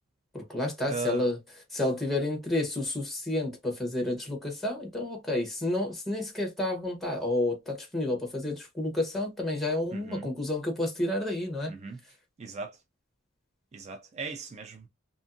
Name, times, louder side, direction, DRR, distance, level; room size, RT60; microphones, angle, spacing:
voice 1, 0.3-1.4 1.7-11.7, left 1 dB, ahead, 0.9 m, -30 dB
voice 2, 0.9-1.3 9.9-10.3 11.7-12.0 12.4-12.8 13.7-14.9, right 4 dB, 35° right, 0.4 m, -38 dB
2.7 x 2.6 x 2.5 m
head